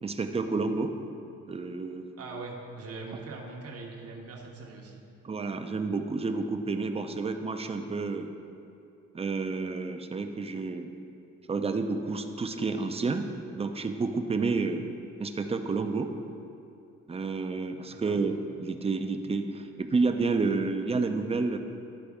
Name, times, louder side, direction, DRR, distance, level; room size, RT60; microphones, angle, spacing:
voice 1, 0.0-0.9 1.5-2.1 5.2-8.3 9.1-10.9 11.5-14.9 15.2-16.1 17.1-21.6, right 4 dB, 20° right, 6 dB, 0.5 m, -30 dB
voice 2, 2.2-5.0 17.9-18.2, right 3 dB, 50° right, 0 dB, 0.9 m, -41 dB
11.5 x 3.9 x 3.5 m, 2.7 s
cardioid pair, 90°, 30 cm